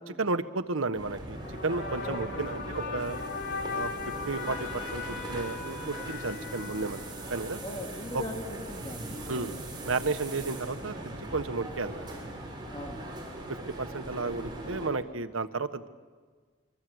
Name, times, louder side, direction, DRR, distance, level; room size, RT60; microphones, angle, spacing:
voice 1, 0.2-1.4 1.6-3.2 3.7-3.9 4.3-7.6 8.1-8.2 9.3-9.5 9.8-11.0 11.3-12.1 13.5-15.9, right 3 dB, 90° right, 10 dB, 1.3 m, -32 dB
sound 1, 0.9-14.9, right 1 dB, 20° right, 5.9 m, -40 dB
sound 2, 1.3-7.7, left 4 dB, 60° left, 3.1 m, -38 dB
voice 2, 2.0-2.4 7.6-9.6 12.7-13.0, left 1 dB, 25° left, 0 dB, 2.2 m, -40 dB
26.5 x 24.5 x 8.0 m, 1.5 s
head